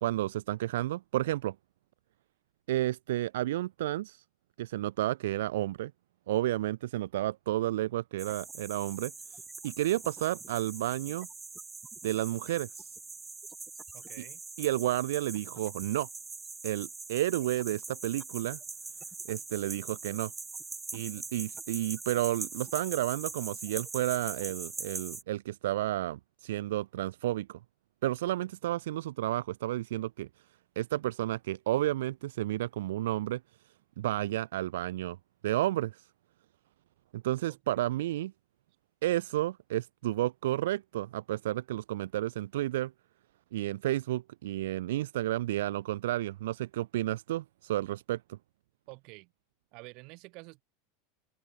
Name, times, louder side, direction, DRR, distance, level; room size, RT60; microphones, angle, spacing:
voice 1, 0.0-1.6 2.7-4.2 4.6-5.9 6.3-9.1 9.6-11.3 12.0-12.9 14.6-16.1 16.6-18.6 19.3-20.3 20.9-27.6 28.0-30.3 30.8-33.4 34.0-35.2 35.4-36.1 37.1-38.3 39.0-42.9 43.5-48.4, right 14 dB, 85° right, 0.4 m, -31 dB
sound 1, 8.2-25.2, right 4 dB, 10° right, 0.8 m, -42 dB
voice 2, 13.9-14.4 37.5-37.6 48.9-49.3 49.7-50.6, right 28 dB, 50° right, 6.4 m, -49 dB
supercardioid pair, 145°, 0 cm